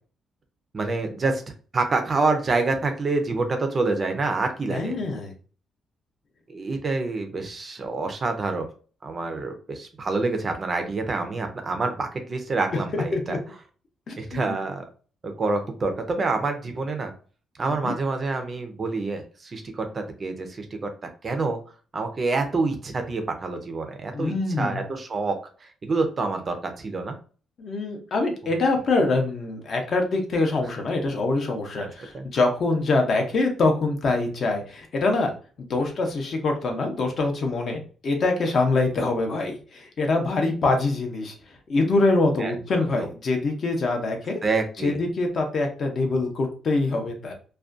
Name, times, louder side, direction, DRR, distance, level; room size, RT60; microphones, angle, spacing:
voice 1, 0.7-1.4 1.7-5.0 6.5-8.7 9.0-13.4 14.1-14.9 15.2-17.1 17.6-20.9 21.2-21.6 21.9-27.2 31.8-32.3 35.8-35.9 42.4-43.1 44.4-45.0, right 3 dB, 30° right, 5 dB, 0.4 m, -27 dB
voice 2, 4.7-5.3 12.9-13.4 14.1-14.5 17.8-17.9 24.1-24.8 27.6-35.3 35.6-41.3 41.7-44.4 44.8-47.3, left 3 dB, 45° left, 3 dB, 0.6 m, -24 dB
2.4 x 2.2 x 2.4 m, 0.39 s
cardioid pair, 155°, 0 cm